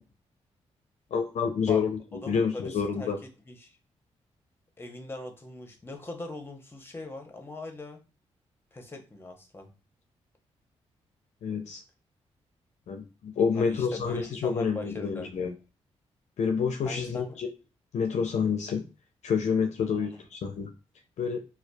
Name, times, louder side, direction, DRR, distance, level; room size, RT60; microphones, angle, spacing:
voice 1, 1.1-3.2 11.4-11.8 12.9-15.5 16.4-17.5 17.9-18.8 19.2-20.7 21.2-21.4, left 6 dB, 70° left, 5 dB, 0.4 m, -28 dB
voice 2, 2.2-3.1 3.5-3.8 4.8-8.0 8.7-9.7 13.5-15.3 16.8-17.4 19.9-20.1, left 2 dB, 20° left, 4 dB, 0.8 m, -40 dB
2.4 x 2.3 x 2.2 m, 0.30 s
supercardioid pair, 55°, 12 cm